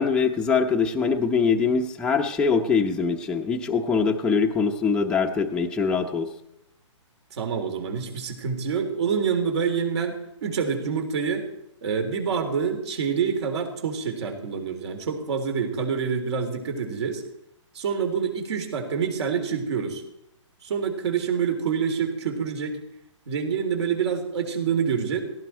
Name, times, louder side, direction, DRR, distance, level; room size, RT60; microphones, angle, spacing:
voice 1, 0.0-6.3, left 5 dB, 5° left, 0 dB, 0.8 m, -23 dB
voice 2, 7.3-11.5 11.8-17.2 17.7-20.0 20.6-22.8 23.3-25.2, right 6 dB, 60° right, 5 dB, 3.7 m, -27 dB
17.5 x 17.0 x 4.5 m, 0.84 s
hypercardioid pair, 155°, 16 cm